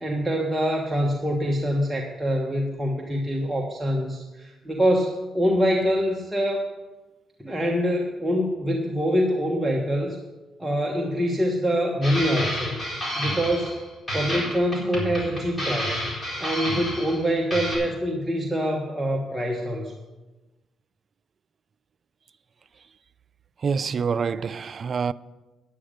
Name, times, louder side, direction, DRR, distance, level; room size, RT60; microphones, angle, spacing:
voice 1, 0.0-6.7 7.4-10.2 10.6-12.8 13.2-13.8 14.1-16.0 16.4-19.9, equal, 5° right, 1.3 m, -25 dB
sound 1, 12.0-13.8 14.1-17.2 17.5-17.8, equal, 20° left, 4.2 m, -30 dB
voice 2, 23.6-25.1, right 6 dB, 45° right, 0.3 m, -26 dB
10.0 x 9.6 x 5.1 m
cardioid pair, 90°, 0 cm